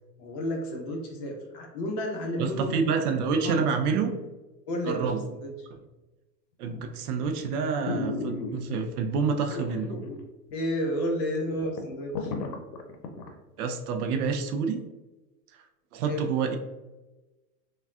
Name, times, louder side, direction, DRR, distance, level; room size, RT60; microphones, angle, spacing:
voice 1, 0.2-2.7 3.4-3.6 4.7-5.5 10.5-12.3 16.0-16.3, equal, 40° left, 0 dB, 0.7 m, -31 dB
voice 2, 2.4-4.1 4.8-5.3 5.7-5.8 6.6-10.0 13.6-14.8 15.9-16.6, right 5 dB, 65° right, 5 dB, 0.6 m, -28 dB
sound 1, 6.7-7.0 7.4-7.5 7.8-8.9 9.5-10.2 10.5-10.6 11.1-11.2 11.4-13.3 13.7-13.8, left 3 dB, 90° left, 0.7 m, -34 dB
3.4 x 2.3 x 2.4 m, 1.1 s
hypercardioid pair, 130°, 50 cm